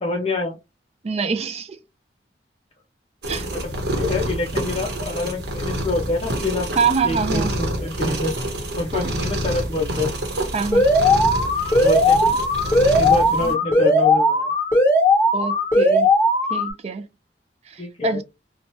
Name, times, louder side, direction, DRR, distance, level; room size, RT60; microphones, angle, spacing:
voice 1, 0.0-0.6 3.5-3.6 3.9-6.7 7.0-8.4 8.8-10.1 11.8-12.4 12.9-14.5 17.8-18.2, left 2 dB, 35° left, 0.5 m, -26 dB
voice 2, 1.0-1.8 3.3-3.5 6.8-7.6 8.9-9.1 10.5-10.8 15.3-16.1 16.5-17.1 17.7-18.2, right 5 dB, 35° right, 0.3 m, -25 dB
sound 1, 3.2-13.5, right 1 dB, 65° right, 0.9 m, -27 dB
Alarm, 10.7-16.7, left 1 dB, 10° left, 1.2 m, -17 dB
2.7 x 2.1 x 3.0 m
head